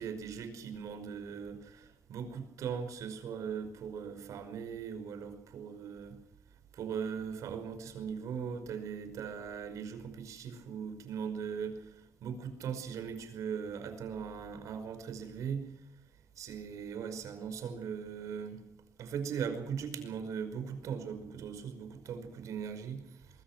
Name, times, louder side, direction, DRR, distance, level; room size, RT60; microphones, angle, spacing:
voice 1, 0.0-6.2 6.7-15.7 16.4-18.6 19.0-23.4, right 7 dB, 80° right, 8 dB, 5.3 m, -39 dB
23.5 x 23.5 x 6.1 m, 0.78 s
wide cardioid pair, 180°, 5 cm